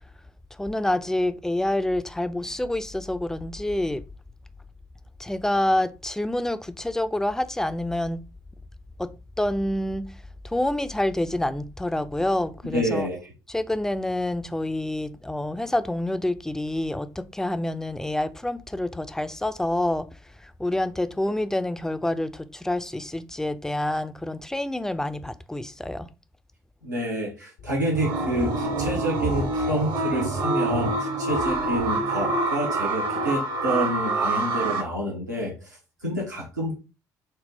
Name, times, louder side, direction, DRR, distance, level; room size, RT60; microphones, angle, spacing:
voice 1, 0.6-4.0 5.2-8.3 9.0-10.1 10.4-13.1 13.5-20.1 20.4-26.1, left 1 dB, 5° left, 0.4 m, -27 dB
voice 2, 12.7-13.3 26.8-36.7, right 1 dB, 90° right, 0.9 m, -28 dB
sound 1, 27.6-32.5, equal, 70° left, 0.7 m, -39 dB
sound 2, 27.9-34.8, right 2 dB, 55° right, 0.8 m, -26 dB
4.3 x 2.0 x 3.4 m
figure-of-eight pair, 50°, 9 cm